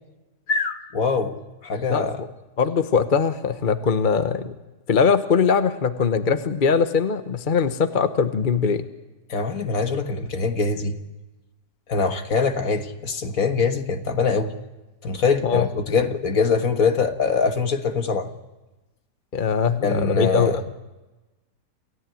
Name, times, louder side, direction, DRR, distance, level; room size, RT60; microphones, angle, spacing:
voice 1, 0.5-2.2 9.3-11.0 11.9-14.5 15.0-18.3 19.8-20.6, left 5 dB, 60° left, 7 dB, 1.9 m, -23 dB
voice 2, 2.6-4.5 4.9-8.9 15.4-15.7 19.3-20.5, left 6 dB, 35° left, 10 dB, 1.0 m, -21 dB
28.5 x 16.0 x 9.2 m, 1.1 s
omnidirectional pair, 1.7 m